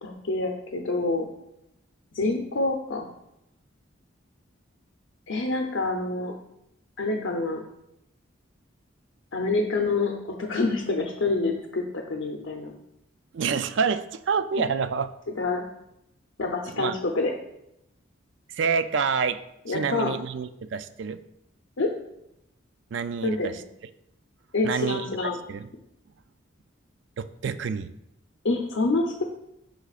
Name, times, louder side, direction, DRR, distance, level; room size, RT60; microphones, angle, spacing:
voice 1, 0.0-1.2 2.1-3.1 5.3-6.3 7.0-7.6 9.3-12.7 15.4-15.7 16.4-17.3 19.7-20.1 21.8-21.9 23.2-23.6 24.5-25.4 28.4-29.2, left 3 dB, 80° left, 1 dB, 0.7 m, -27 dB
voice 2, 13.3-15.1 16.7-17.0 18.5-19.4 19.7-21.2 22.9-23.6 24.6-25.1 25.5-25.7 27.2-27.9, right 5 dB, 60° right, 12 dB, 0.4 m, -27 dB
11.5 x 3.9 x 2.4 m, 0.83 s
head